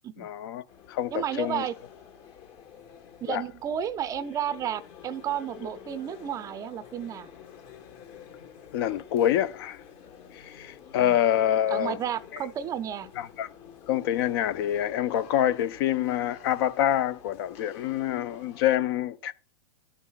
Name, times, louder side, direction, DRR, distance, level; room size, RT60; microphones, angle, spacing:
voice 1, 0.2-1.6 3.3-3.4 8.7-9.8 10.3-12.0 13.2-13.5 13.9-19.3, left 11 dB, 55° left, 0.6 m, -26 dB
sound 1, 0.7-18.8, left 8 dB, 40° left, 1.4 m, -49 dB
voice 2, 1.1-1.7 3.2-7.3 11.0-11.2 11.7-13.1, right 9 dB, 25° right, 0.5 m, -32 dB
12.5 x 5.5 x 2.3 m
hypercardioid pair, 125°, 15 cm